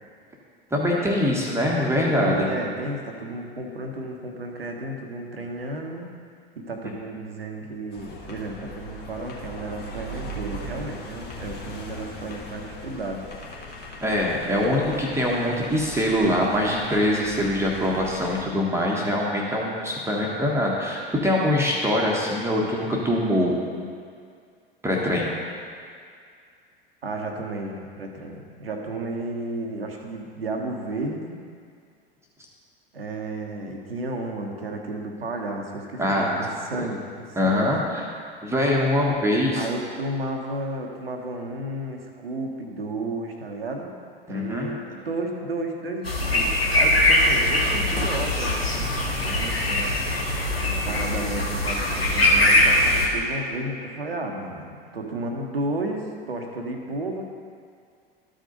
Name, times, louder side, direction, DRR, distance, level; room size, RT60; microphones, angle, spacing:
voice 1, 0.7-2.5 14.0-23.9 24.8-25.3 36.0-36.4 37.4-38.1 38.4-39.7 44.3-44.7, left 1 dB, 10° right, -3 dB, 1.2 m, -23 dB
voice 2, 2.2-6.1 6.6-13.3 27.0-31.4 32.9-37.7 39.5-44.0 44.3-50.3 50.6-57.3, right 2 dB, 80° right, 2 dB, 1.0 m, -33 dB
sound 1, 7.9-18.5, equal, 35° left, 1.6 m, -39 dB
sound 2, 46.0-53.1, left 1 dB, 90° left, 1.1 m, -21 dB
13.0 x 5.0 x 3.9 m, 2.2 s
figure-of-eight pair, 75°, 29 cm